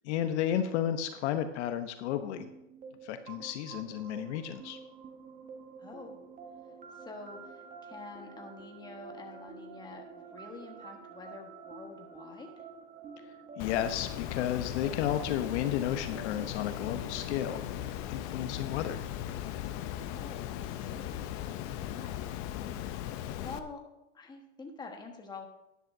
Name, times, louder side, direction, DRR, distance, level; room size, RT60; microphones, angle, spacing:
voice 1, 0.1-2.5 3.0-4.8 13.6-17.7 18.1-19.0, left 10 dB, 60° left, 9 dB, 0.9 m, -32 dB
sound 1, 2.4-21.9, right 5 dB, 20° right, 0.9 m, -50 dB
voice 2, 5.8-6.2 7.0-12.5 19.9-21.3 21.9-22.3 23.3-23.8 24.1-25.5, left 4 dB, 10° left, 2 dB, 1.3 m, -47 dB
Water, 13.6-23.6, left 11 dB, 35° left, 0.6 m, -38 dB
13.0 x 11.0 x 2.7 m, 0.90 s
supercardioid pair, 140°, 39 cm